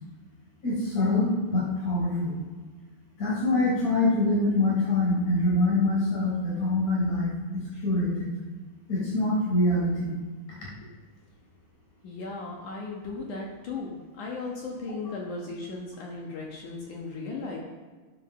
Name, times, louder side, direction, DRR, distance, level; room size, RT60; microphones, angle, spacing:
voice 1, 0.6-2.3 3.2-7.3 7.8-8.3 8.9-10.1, left 2 dB, 35° left, -5 dB, 4.9 m, -24 dB
voice 2, 12.0-17.6, left 3 dB, 70° left, -1 dB, 1.9 m, -36 dB
10.0 x 8.0 x 6.4 m, 1.3 s
omnidirectional pair, 5.4 m